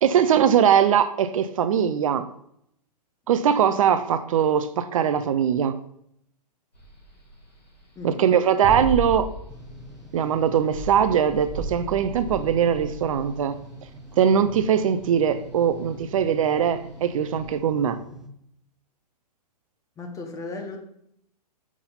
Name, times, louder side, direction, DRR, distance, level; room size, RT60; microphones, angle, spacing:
voice 1, 0.0-2.3 3.3-5.8 8.0-9.3 10.1-13.6 14.2-18.0, right 8 dB, 55° right, 0.5 m, -21 dB
sound 1, 6.7-17.6, right 3 dB, 85° left, 2.9 m, -36 dB
sound 2, 9.5-18.3, right 1 dB, 5° right, 0.7 m, -43 dB
voice 2, 20.0-20.8, left 3 dB, 15° left, 1.1 m, -35 dB
6.0 x 5.6 x 3.9 m
figure-of-eight pair, 115°, 21 cm